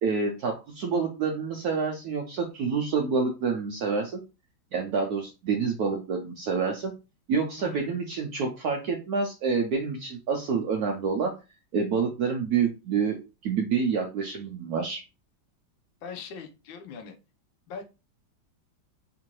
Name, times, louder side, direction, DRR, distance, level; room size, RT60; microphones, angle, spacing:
voice 1, 0.0-4.2 4.7-6.9 7.3-11.3 11.7-13.2 13.4-15.0, right 5 dB, 70° right, 2 dB, 0.9 m, -27 dB
voice 2, 16.0-17.1 17.7-17.8, left 5 dB, 75° left, 5 dB, 1.4 m, -40 dB
3.7 x 2.6 x 2.9 m, 0.28 s
omnidirectional pair, 2.2 m